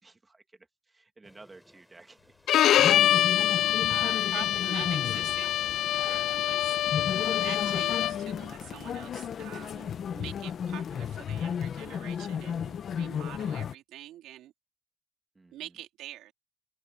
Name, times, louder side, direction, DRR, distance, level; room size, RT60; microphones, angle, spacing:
voice 1, 0.0-2.6 6.0-6.3 6.6-6.8 15.3-15.8, right 3 dB, 20° right, 2.6 m, -54 dB
sound 1, 1.2-12.0, left 1 dB, 5° left, 5.1 m, -64 dB
Bowed string instrument, 2.5-8.3, left 12 dB, 65° left, 0.3 m, -25 dB
sound 2, 2.8-13.7, left 8 dB, 50° left, 1.2 m, -34 dB
voice 2, 3.9-5.5 5.9-6.7 7.1-14.5 15.5-16.3, right 13 dB, 80° right, 4.1 m, -45 dB
open air
cardioid pair, 120°, 0 cm